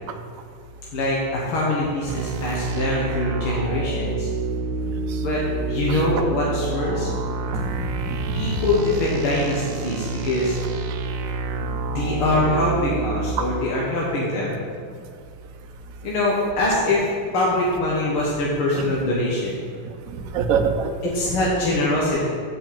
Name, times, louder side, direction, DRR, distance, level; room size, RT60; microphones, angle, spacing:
voice 1, 0.9-4.3 5.2-5.4 5.7-7.1 8.3-10.6 11.5-14.6 16.0-19.6 21.0-22.3, left 2 dB, 75° left, -5 dB, 2.4 m, -23 dB
sound 1, 2.1-13.4, right 3 dB, 85° right, 1.5 m, -28 dB
voice 2, 7.5-8.6 13.4-13.5 18.0-18.1 18.8-18.9 20.3-20.9 21.2-21.3, right 6 dB, 65° right, 6 dB, 0.9 m, -25 dB
7.5 x 6.8 x 7.5 m, 2.1 s
omnidirectional pair, 2.4 m